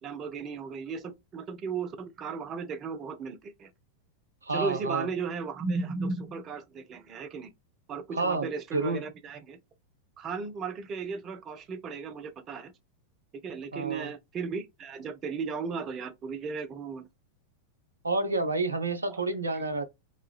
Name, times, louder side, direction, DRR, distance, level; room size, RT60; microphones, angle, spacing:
voice 1, 0.0-3.7 4.5-7.5 7.9-9.6 10.2-12.7 13.4-17.1 19.1-19.2 19.5-19.6, right 5 dB, 30° right, 0.6 m, -35 dB
voice 2, 4.4-5.1 8.1-9.0 13.7-14.1 18.0-19.9, right 3 dB, 75° right, 0.5 m, -29 dB
3.1 x 2.3 x 2.3 m
figure-of-eight pair, 90°, 0 cm